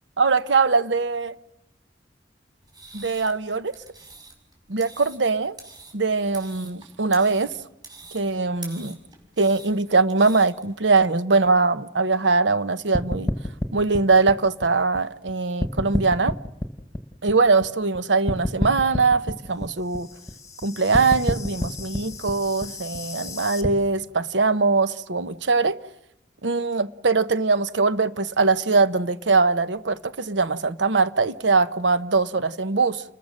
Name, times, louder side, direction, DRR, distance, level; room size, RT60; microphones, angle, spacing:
voice 1, 0.2-1.3 2.9-3.7 4.7-5.6 5.9-7.5 8.1-9.0 9.4-13.3 13.7-16.3 17.2-20.1 20.6-25.8 26.4-33.0, right 4 dB, 85° right, 0.9 m, -22 dB
sound 1, 2.6-11.0, right 3 dB, 25° right, 5.4 m, -46 dB
sound 2, 12.9-15.3 15.6-18.0 18.3-23.7, left 1 dB, 20° left, 1.5 m, -29 dB
29.5 x 21.5 x 6.5 m
head